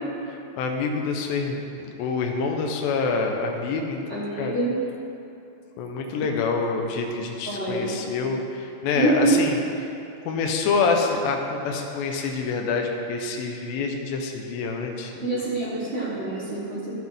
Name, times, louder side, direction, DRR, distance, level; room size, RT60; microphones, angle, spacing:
voice 1, 0.6-4.6 5.8-9.6 10.2-15.3, left 4 dB, 75° left, 2 dB, 2.2 m, -26 dB
voice 2, 4.1-4.8 7.5-7.9 8.9-9.4 15.2-16.9, right 2 dB, 25° right, -11 dB, 1.6 m, -25 dB
13.0 x 7.9 x 3.6 m, 2.7 s
omnidirectional pair, 5.2 m